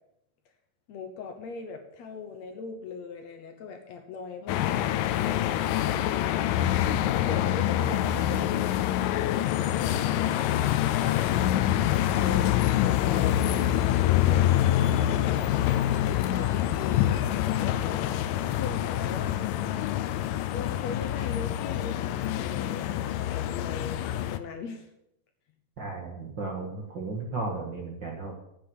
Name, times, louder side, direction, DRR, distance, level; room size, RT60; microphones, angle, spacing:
voice 1, 0.9-6.4 7.2-11.3 11.9-19.9 20.5-24.9, left 5 dB, 65° left, 4 dB, 1.8 m, -40 dB
sound 1, 4.5-24.4, left 12 dB, 90° left, 2.3 m, -26 dB
voice 2, 25.8-28.3, right 3 dB, 50° right, 0 dB, 1.4 m, -34 dB
9.4 x 7.0 x 7.6 m, 0.81 s
omnidirectional pair, 4.0 m